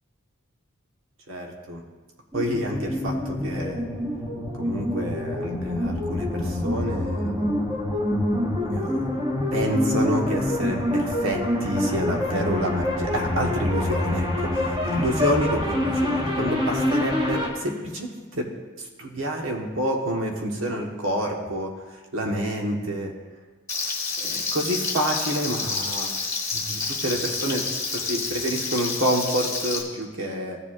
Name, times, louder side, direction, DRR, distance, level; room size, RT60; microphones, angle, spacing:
voice 1, 1.3-1.8 2.3-3.8 4.5-7.5 8.7-9.0 9.5-18.5 18.8-23.1 24.2-26.1 26.5-27.6 27.9-30.6, equal, 70° right, 1 dB, 1.4 m, -28 dB
sound 1, 2.3-17.5, left 1 dB, 20° right, 1.4 m, -26 dB
Frying (food), 23.7-29.8, left 4 dB, 15° left, 1.4 m, -29 dB
16.0 x 7.1 x 2.5 m, 1.3 s
head